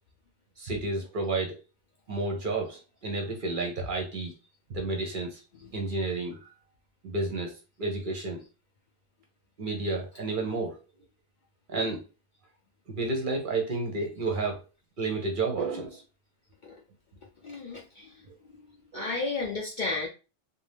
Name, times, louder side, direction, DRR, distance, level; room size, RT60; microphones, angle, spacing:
voice 1, 0.6-1.6 2.1-4.3 4.7-5.4 5.7-6.5 7.0-7.5 7.8-8.4 9.6-10.8 11.7-12.0 12.9-14.6 15.0-16.0 18.9-19.1, right 3 dB, 55° right, 2 dB, 0.7 m, -31 dB
voice 2, 17.4-18.2 18.9-20.1, left 3 dB, 60° left, 0 dB, 0.5 m, -33 dB
2.6 x 2.1 x 3.3 m, 0.32 s
omnidirectional pair, 1.2 m